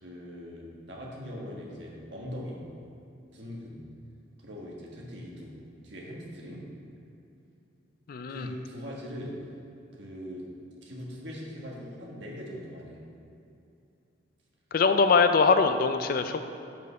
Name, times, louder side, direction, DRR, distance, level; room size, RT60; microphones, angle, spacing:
voice 1, 0.0-2.6 3.3-3.8 4.4-5.5 5.8-6.6 8.3-9.4 9.9-10.4 10.8-13.0, equal, 65° right, -2 dB, 1.4 m, -41 dB
voice 2, 8.1-8.5 14.7-16.4, left 4 dB, 50° left, 9 dB, 0.3 m, -22 dB
6.2 x 5.2 x 5.6 m, 2.7 s
head